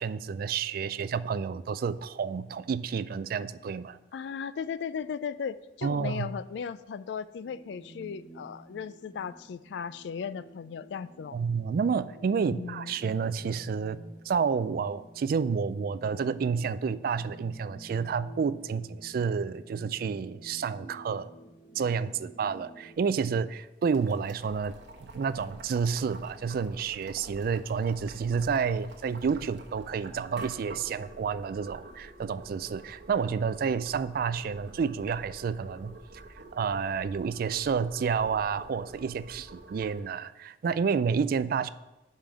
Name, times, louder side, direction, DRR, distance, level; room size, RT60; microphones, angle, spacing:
voice 1, 0.0-4.0 5.8-6.3 11.3-21.3 21.8-36.0 36.5-41.7, right 6 dB, 55° right, 15 dB, 0.3 m, -30 dB
voice 2, 4.1-11.4 12.4-12.9, left 6 dB, 80° left, 15 dB, 0.3 m, -36 dB
sound 1, 7.4-22.9, right 2 dB, 40° left, 1.9 m, -51 dB
Boiling, 23.9-40.0, right 2 dB, 85° right, 1.1 m, -48 dB
5.6 x 5.1 x 6.0 m, 1.0 s
head